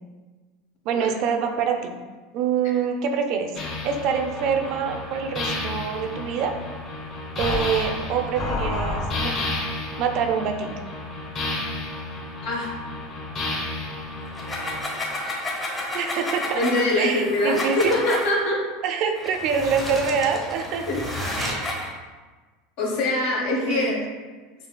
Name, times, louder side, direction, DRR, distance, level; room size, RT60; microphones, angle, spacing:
voice 1, 0.8-1.9 2.3-3.5 3.8-6.5 7.4-10.7 15.9-16.6 17.0-18.0 18.8-20.9 21.4-21.7 23.7-24.1, right 6 dB, 55° right, 5 dB, 0.4 m, -26 dB
sound 1, 3.5-14.8, left 2 dB, 40° left, 1.2 m, -31 dB
sound 2, 14.3-18.3 19.1-21.9, left 1 dB, 15° left, 0.9 m, -31 dB
voice 2, 16.5-18.6 20.9-21.0 22.8-23.9, left 1 dB, 65° left, -1 dB, 1.1 m, -23 dB
5.6 x 2.7 x 2.2 m, 1.3 s
supercardioid pair, 120°, 0 cm